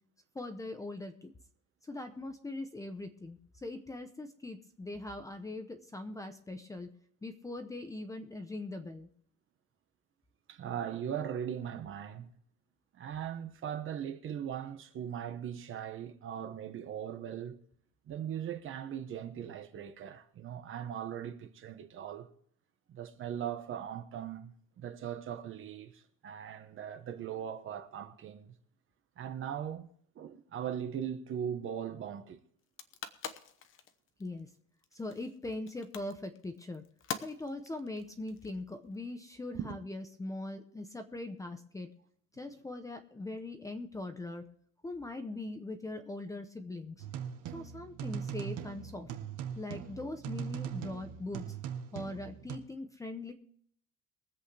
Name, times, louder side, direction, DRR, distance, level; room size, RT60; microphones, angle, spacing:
voice 1, 0.3-1.3 1.8-6.9 7.2-9.1 34.2-34.5 34.9-36.8 37.2-41.9 42.3-44.4 44.8-47.1 47.5-49.1 49.6-51.6 51.9-53.3, left 2 dB, 10° left, 0.7 m, -41 dB
voice 2, 10.5-12.3 12.9-17.6 18.1-22.3 22.9-28.6 29.2-29.9 30.1-32.4 39.5-39.8, right 9 dB, 40° right, 1.2 m, -39 dB
sound 1, 32.6-39.0, left 7 dB, 40° left, 1.0 m, -45 dB
sound 2, 47.0-52.6, right 8 dB, 75° right, 1.6 m, -40 dB
23.0 x 8.3 x 3.4 m
cardioid pair, 180°, 32 cm